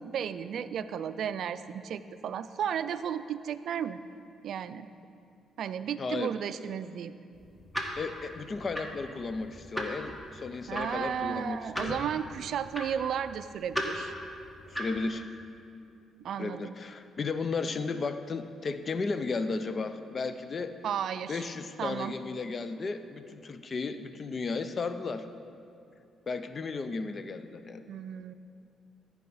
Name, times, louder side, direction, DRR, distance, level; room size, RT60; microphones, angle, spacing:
voice 1, 0.0-4.0 4.4-4.9 5.6-7.1 10.7-14.1 16.2-16.7 20.8-21.4 21.8-22.1 27.9-28.3, right 8 dB, 70° right, 13 dB, 0.3 m, -34 dB
voice 2, 6.0-6.3 8.0-12.0 14.7-15.3 16.4-20.8 21.3-25.3 26.3-27.8, left 4 dB, 40° left, 10 dB, 0.4 m, -34 dB
sound 1, 7.3-15.1, equal, 10° left, 1.2 m, -38 dB
14.0 x 4.7 x 5.5 m, 2.5 s
cardioid pair, 90°, 0 cm